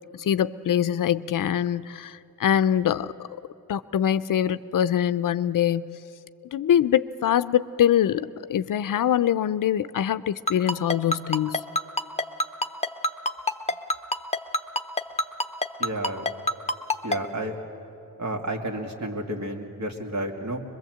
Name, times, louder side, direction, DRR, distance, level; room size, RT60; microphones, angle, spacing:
voice 1, 0.2-3.1 3.7-6.0 6.5-11.6, left 10 dB, 65° left, 15 dB, 0.6 m, -23 dB
Ringtone, 10.5-17.2, left 1 dB, 20° left, 0.8 m, -24 dB
voice 2, 15.8-16.3 17.0-17.5 18.2-20.6, right 1 dB, 50° right, 2 dB, 2.4 m, -31 dB
22.5 x 22.0 x 7.9 m, 2.8 s
cardioid pair, 85°, 35 cm